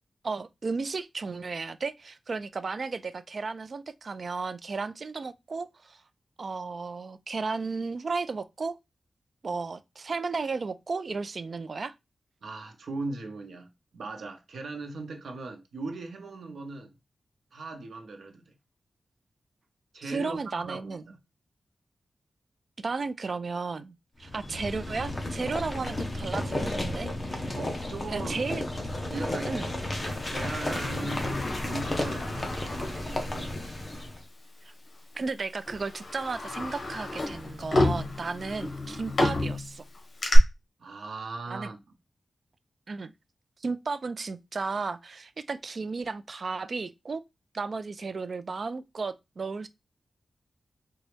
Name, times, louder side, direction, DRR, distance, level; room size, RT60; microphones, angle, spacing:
voice 1, 0.2-6.0 6.4-8.8 9.4-11.9 20.1-21.0 22.8-23.9 24.2-27.5 28.1-28.6 29.5-29.7 35.2-39.8 41.5-41.7 42.9-43.1 43.6-47.2 47.5-49.7, right 4 dB, 50° right, 0.3 m, -34 dB
voice 2, 12.4-16.9 17.5-18.5 19.9-21.2 27.5-28.5 29.1-29.7 30.0-33.7 40.8-41.8, right 3 dB, 80° right, 0.8 m, -39 dB
sound 1, 24.2-34.2, left 1 dB, 25° left, 0.7 m, -33 dB
Sliding door, 30.4-33.6 33.9-34.0 35.0-35.2 35.6-40.4, left 2 dB, 55° left, 1.1 m, -31 dB
4.0 x 2.2 x 3.2 m
wide cardioid pair, 125°, 0 cm